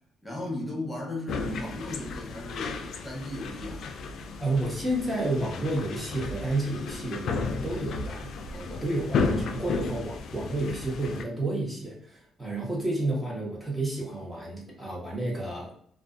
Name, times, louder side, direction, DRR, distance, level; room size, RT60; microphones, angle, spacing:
voice 1, 0.2-3.9, left 1 dB, 15° left, -3 dB, 0.9 m, -36 dB
sound 1, 1.3-11.2, left 4 dB, 70° left, 0.3 m, -33 dB
voice 2, 4.4-15.7, right 2 dB, 15° right, -3 dB, 0.9 m, -31 dB
2.5 x 2.3 x 2.4 m, 0.64 s
cardioid pair, 90°, 0 cm